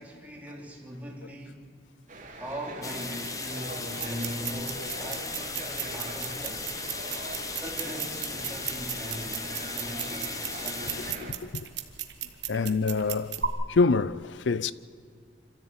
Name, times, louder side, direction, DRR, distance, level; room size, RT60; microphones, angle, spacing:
voice 1, 0.0-1.6 2.4-6.8 7.5-9.4 9.8-11.1, equal, 10° right, 3.2 m, -40 dB
sound 1, 2.1-11.3, right 2 dB, 40° right, 3.0 m, -42 dB
sound 2, 2.8-11.1, left 4 dB, 20° left, 1.0 m, -37 dB
sound 3, 4.0-13.5, right 9 dB, 65° right, 1.4 m, -37 dB
voice 2, 11.2-11.7 12.5-13.4 13.7-14.7, left 4 dB, 75° left, 0.5 m, -26 dB
26.0 x 14.0 x 8.8 m
head